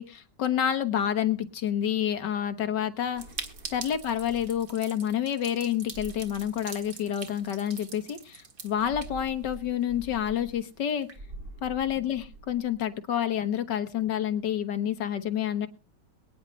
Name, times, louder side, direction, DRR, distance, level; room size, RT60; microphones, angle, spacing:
voice 1, 0.0-3.2 3.7-11.1 11.6-15.7, left 10 dB, 80° left, 10 dB, 1.9 m, -28 dB
sound 1, 3.0-4.9 5.8-7.3 8.7-10.8 11.1-12.8, right 1 dB, 75° right, 8.2 m, -47 dB
sound 2, 3.2-9.8 10.1-10.2 10.4-10.5 10.9-11.2, right 5 dB, 55° right, 2.1 m, -43 dB
22.5 x 9.8 x 3.2 m, 0.33 s
omnidirectional pair, 1.9 m